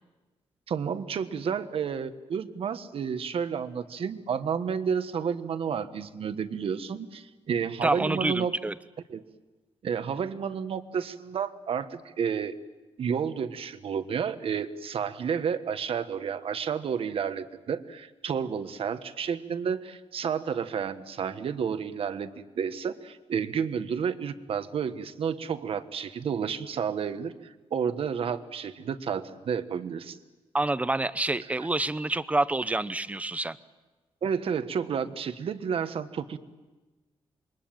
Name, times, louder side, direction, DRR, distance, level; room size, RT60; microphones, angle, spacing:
voice 1, 0.7-8.5 9.1-9.2 9.8-12.5 13.0-22.3 22.6-30.2 31.6-31.7 34.2-36.4, right 7 dB, 60° right, 10 dB, 1.4 m, -31 dB
voice 2, 7.8-8.7 30.5-33.6, right 2 dB, 15° right, 14 dB, 0.8 m, -27 dB
27.5 x 23.0 x 9.0 m, 1.2 s
wide cardioid pair, 130°, 11 cm